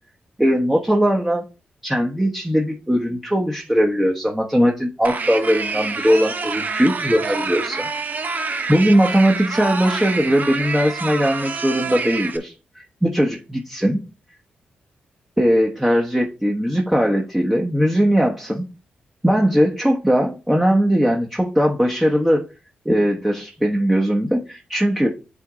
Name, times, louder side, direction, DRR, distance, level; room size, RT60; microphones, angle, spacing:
voice 1, 0.4-1.4 1.8-7.9 8.7-14.0 15.4-18.7 19.2-22.4 22.8-25.1, equal, 10° right, 0 dB, 1.2 m, -19 dB
sound 1, 5.0-12.4, right 4 dB, 50° right, 1.0 m, -27 dB
8.1 x 3.5 x 3.9 m, 0.32 s
supercardioid pair, 50°, 4 cm